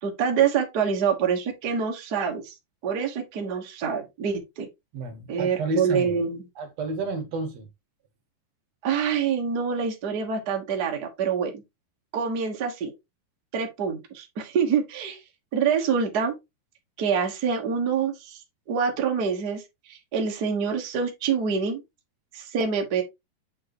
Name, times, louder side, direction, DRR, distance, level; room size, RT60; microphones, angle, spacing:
voice 1, 0.0-2.5 2.8-4.7 5.3-6.5 8.8-11.6 12.1-12.9 13.5-15.2 15.5-16.3 17.0-21.8 22.3-23.0, right 6 dB, 80° right, 0.8 m, -26 dB
voice 2, 4.9-6.2 6.6-7.7, right 2 dB, 60° right, 1.9 m, -31 dB
7.5 x 4.7 x 3.1 m
omnidirectional pair, 4.2 m